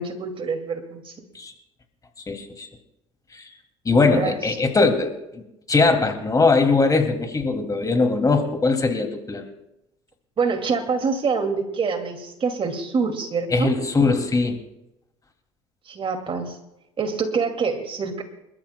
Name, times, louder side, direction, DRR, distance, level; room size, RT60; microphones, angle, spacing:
voice 1, 0.0-1.3 3.9-4.4 10.4-13.7 15.9-16.6 17.0-18.2, right 5 dB, 35° right, 6 dB, 2.2 m, -26 dB
voice 2, 2.3-2.7 3.3-3.5 3.8-9.5 13.5-14.6, left 3 dB, 25° left, 5 dB, 2.4 m, -21 dB
29.0 x 13.5 x 2.2 m, 0.91 s
hypercardioid pair, 75°, 15 cm